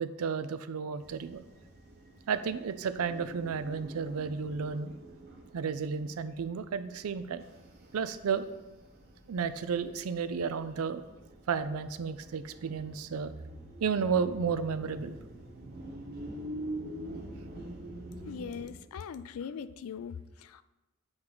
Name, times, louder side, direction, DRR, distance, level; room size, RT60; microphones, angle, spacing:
voice 1, 0.0-1.4 2.3-4.9 5.5-7.4 7.9-8.5 9.3-11.0 11.5-13.3 13.8-15.2, right 6 dB, 85° right, 12 dB, 0.4 m, -32 dB
sound 1, 1.0-18.7, right 1 dB, 50° right, 1.1 m, -46 dB
voice 2, 18.3-20.6, left 6 dB, 80° left, 14 dB, 0.3 m, -40 dB
7.7 x 4.4 x 3.9 m, 1.1 s
head